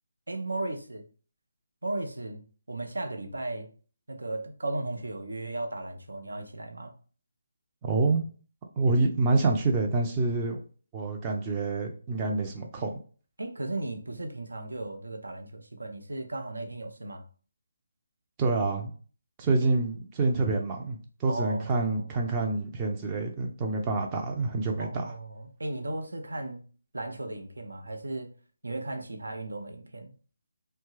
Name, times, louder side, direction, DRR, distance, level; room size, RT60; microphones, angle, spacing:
voice 1, 0.3-1.0 1.8-2.4 2.7-3.7 4.1-6.9 13.4-17.2 21.3-22.1 24.8-26.6 26.9-28.3 28.6-30.1, right 2 dB, 80° right, 4 dB, 0.6 m, -36 dB
voice 2, 7.8-8.2 8.8-10.6 10.9-12.9 18.4-18.9 19.4-25.0, right 3 dB, 20° right, 2 dB, 0.4 m, -27 dB
2.9 x 2.2 x 3.1 m, 0.40 s
figure-of-eight pair, 155°, 0 cm